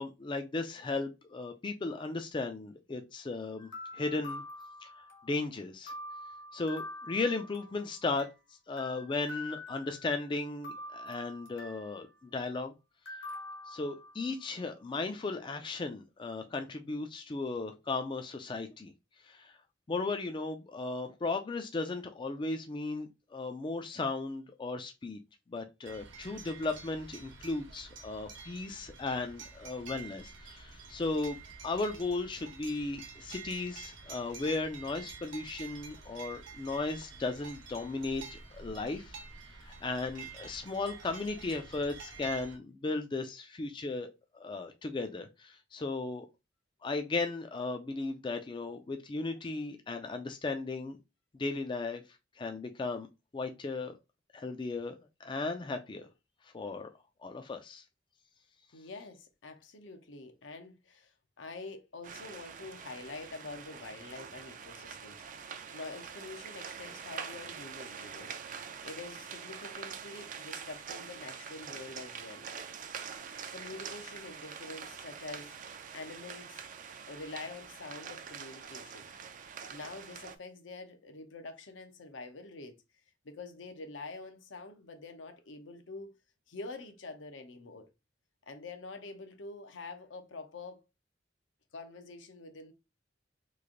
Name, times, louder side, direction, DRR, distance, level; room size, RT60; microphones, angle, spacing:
voice 1, 0.0-3.7 3.9-4.4 4.8-4.9 5.2-5.9 6.5-8.3 8.7-12.7 13.7-18.9 19.2-19.5 19.9-25.2 25.5-31.4 31.6-39.2 39.6-46.3 46.8-51.0 51.3-52.0 52.4-53.1 53.3-54.0 54.3-54.9 55.2-56.1 56.5-56.9 57.2-57.8, left 3 dB, 25° left, 0.3 m, -36 dB
sound 1, 3.6-5.4 5.9-8.4 8.8-10.2 10.6-12.0 13.1-14.5, left 2 dB, 65° left, 1.2 m, -45 dB
sound 2, 25.8-42.6, right 5 dB, 85° right, 0.9 m, -48 dB
voice 2, 58.7-68.3 68.8-72.5 73.5-76.6 77.1-79.1 79.7-82.8 83.2-86.1 86.5-87.9 88.5-90.8 91.7-92.7, left 3 dB, 80° left, 0.7 m, -46 dB
sound 3, 62.0-80.4, right 7 dB, 45° right, 0.4 m, -45 dB
3.2 x 2.5 x 3.7 m
head